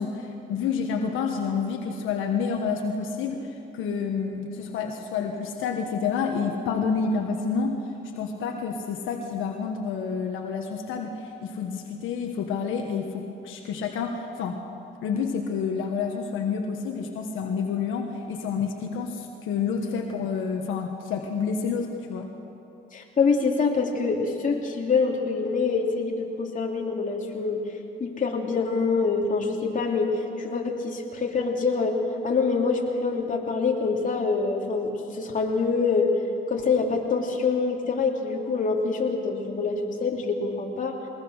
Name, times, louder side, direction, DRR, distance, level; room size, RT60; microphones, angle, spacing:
voice 1, 0.0-7.8 8.2-14.6 15.0-22.3, left 5 dB, 85° left, 3 dB, 1.4 m, -29 dB
voice 2, 22.9-27.6 28.0-36.1 36.5-41.0, left 4 dB, 40° left, 0 dB, 3.0 m, -25 dB
21.5 x 20.0 x 6.5 m, 2.8 s
cardioid pair, 90°, 20 cm